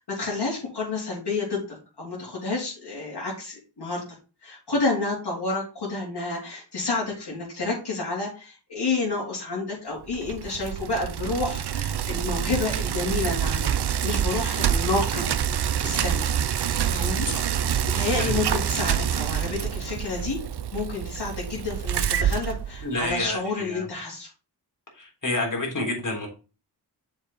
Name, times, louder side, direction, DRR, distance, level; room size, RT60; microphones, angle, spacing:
voice 1, 0.1-4.0 4.4-13.8 14.0-15.3 15.8-16.2 16.9-17.3 17.9-20.4 20.7-24.3, left 3 dB, 70° left, -5 dB, 3.7 m, -29 dB
Bicycle, 10.1-23.2, right 9 dB, 70° right, 0.7 m, -26 dB
voice 2, 22.8-23.8 25.0-26.3, left 2 dB, 50° left, -1 dB, 3.8 m, -29 dB
7.0 x 5.3 x 4.2 m, 0.34 s
cardioid pair, 65°, 41 cm